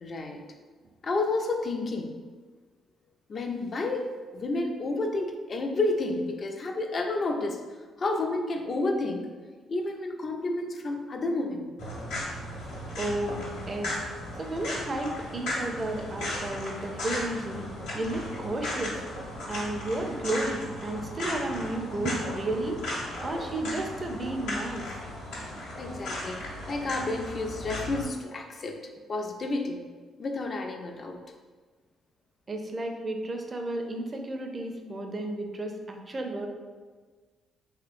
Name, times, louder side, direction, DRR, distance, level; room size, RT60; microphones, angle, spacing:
voice 1, 0.0-0.4 1.0-2.2 3.3-7.6 8.0-9.3 9.7-11.7 25.8-26.4 26.7-28.8 29.1-29.8 30.2-31.2, left 2 dB, 50° left, 3 dB, 0.4 m, -30 dB
sound 1, 11.8-28.0, left 1 dB, 85° left, 0.7 m, -36 dB
voice 2, 13.0-14.0 14.4-17.7 17.9-19.0 19.5-22.8 23.2-24.9 32.5-36.5, right 1 dB, 35° right, 4 dB, 0.4 m, -32 dB
3.0 x 2.8 x 2.5 m, 1.4 s
hypercardioid pair, 50°, 0 cm